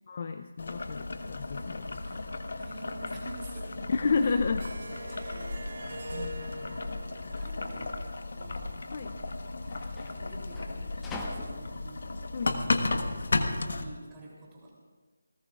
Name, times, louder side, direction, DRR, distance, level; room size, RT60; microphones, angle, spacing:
voice 1, 0.1-2.2 3.9-5.0 6.1-6.8 8.9-9.1 12.3-12.6, left 4 dB, 40° left, 9 dB, 0.6 m, -32 dB
Boiling, 0.6-13.8, left 2 dB, 60° left, 1.3 m, -34 dB
sound 1, 1.2-3.1 3.3-3.5 4.6-8.2, right 1 dB, 55° right, 3.5 m, -45 dB
voice 2, 2.6-3.8 4.2-4.4 7.3-8.0 8.3-8.8 10.1-12.0 12.8-14.7, right 2 dB, 15° right, -5 dB, 3.2 m, -49 dB
sound 2, 5.1-13.7, left 2 dB, 10° left, 1.2 m, -47 dB
29.5 x 19.0 x 2.4 m, 1.4 s
figure-of-eight pair, 165°, 0 cm